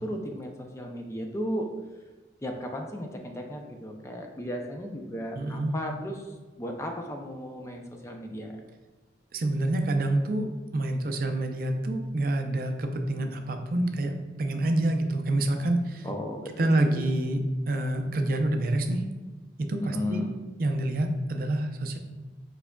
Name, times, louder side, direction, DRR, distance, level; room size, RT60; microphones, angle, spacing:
voice 1, 0.0-1.7 2.4-8.6 16.0-17.1 19.9-20.3, equal, 15° left, 3 dB, 0.4 m, -35 dB
voice 2, 5.3-5.7 9.3-10.5 10.7-16.1 16.6-17.4 17.7-19.0 19.7-20.2 20.6-22.0, right 1 dB, 50° right, 5 dB, 0.4 m, -27 dB
4.6 x 4.6 x 2.2 m, 1.3 s
head